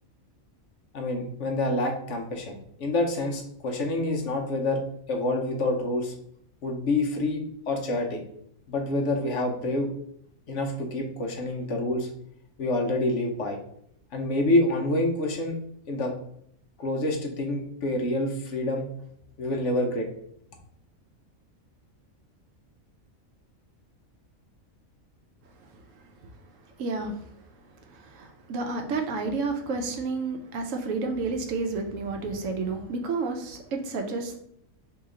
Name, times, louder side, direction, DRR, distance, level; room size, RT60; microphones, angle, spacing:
voice 1, 0.9-4.8 5.1-6.1 6.6-7.4 7.7-8.2 8.7-9.9 10.5-12.1 12.6-13.6 14.1-15.6 15.9-16.1 16.8-18.9 19.4-20.1, left 1 dB, 70° left, 2 dB, 1.0 m, -27 dB
voice 2, 25.6-26.0 26.3-26.4 26.8-27.4 27.8-34.4, right 3 dB, 75° right, 4 dB, 1.0 m, -31 dB
2.9 x 2.8 x 3.6 m, 0.70 s
omnidirectional pair, 1.4 m